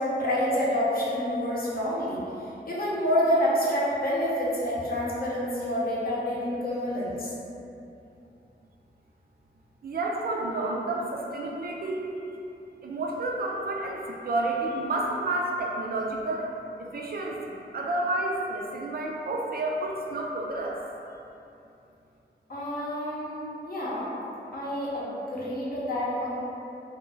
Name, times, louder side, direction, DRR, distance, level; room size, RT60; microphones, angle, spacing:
voice 1, 0.0-2.2 2.7-7.3 22.5-24.1 24.5-26.3, equal, 50° left, -6 dB, 0.7 m, -28 dB
voice 2, 9.8-12.1 12.8-20.8, right 2 dB, 55° right, -2 dB, 0.4 m, -30 dB
2.2 x 2.1 x 3.2 m, 2.7 s
cardioid pair, 55°, 19 cm